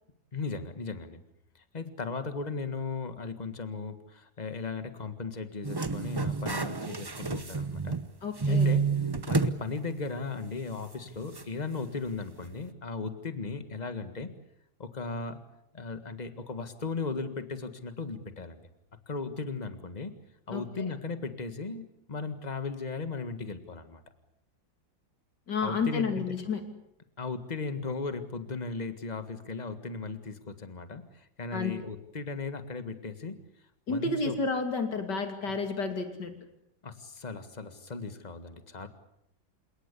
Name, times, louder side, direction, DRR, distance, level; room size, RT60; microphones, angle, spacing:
voice 1, 0.3-1.2 1.5-8.0 8.4-8.8 9.3-14.3 14.8-15.4 15.7-18.7 19.1-20.1 20.5-24.0 25.6-26.2 27.2-33.4 33.9-34.3 36.8-38.9, left 4 dB, 25° left, 10 dB, 1.7 m, -37 dB
sound 1, 5.6-8.1 8.4-9.6 10.0-10.1 11.4-11.5, right 4 dB, 25° right, 0.5 m, -29 dB
voice 2, 8.2-8.7 20.5-20.6 25.5-26.6 31.5-31.7 33.9-36.3, left 4 dB, 70° left, 6 dB, 3.4 m, -30 dB
28.0 x 18.5 x 8.4 m, 0.77 s
omnidirectional pair, 1.9 m